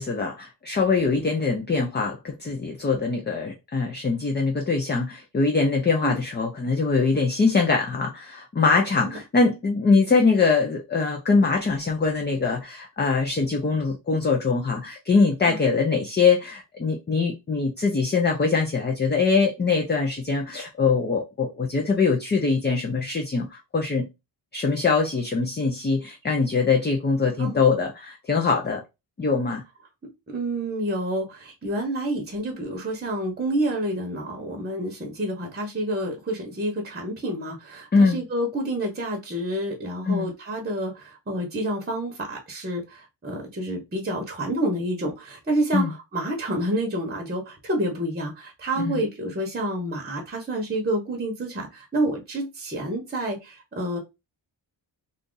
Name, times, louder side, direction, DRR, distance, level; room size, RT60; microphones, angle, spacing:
voice 1, 0.0-24.1 24.5-28.8 29.2-29.6 37.9-38.2 40.1-40.3 45.7-45.9 48.8-49.0, left 4 dB, 25° left, 0.5 m, -23 dB
voice 2, 30.3-54.0, right 1 dB, 20° right, 0.8 m, -28 dB
2.7 x 2.5 x 3.8 m
wide cardioid pair, 115°, 46 cm